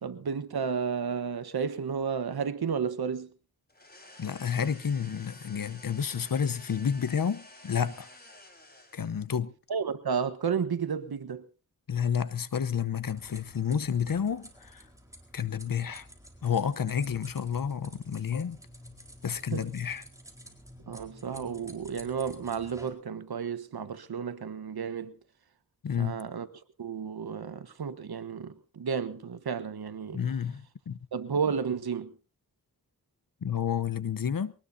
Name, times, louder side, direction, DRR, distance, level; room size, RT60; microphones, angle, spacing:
voice 1, 0.0-3.3 9.7-11.4 19.5-19.6 20.9-25.2 26.0-26.5 26.8-30.2 31.1-32.1, right 6 dB, 75° right, 1.3 m, -32 dB
sound 1, 3.7-9.3, left 1 dB, 25° left, 4.4 m, -52 dB
voice 2, 4.2-8.1 8.9-9.5 11.9-14.8 15.3-16.1 16.4-18.6 19.2-20.0 25.8-26.2 30.1-31.0 33.4-34.5, left 7 dB, 65° left, 1.0 m, -30 dB
sound 2, 13.0-22.9, equal, 10° right, 4.4 m, -51 dB
23.0 x 19.0 x 2.8 m
wide cardioid pair, 70°, 37 cm